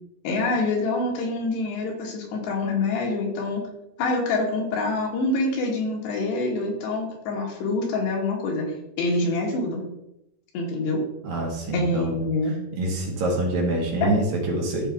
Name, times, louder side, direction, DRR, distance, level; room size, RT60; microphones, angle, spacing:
voice 1, 0.2-3.6 4.0-9.9 10.5-11.0 11.7-12.6 14.0-14.2, left 2 dB, 85° left, -1 dB, 4.0 m, -26 dB
voice 2, 11.2-12.2 12.7-14.9, right 2 dB, 60° right, -1 dB, 3.4 m, -26 dB
14.0 x 4.9 x 3.6 m, 0.85 s
omnidirectional pair, 4.7 m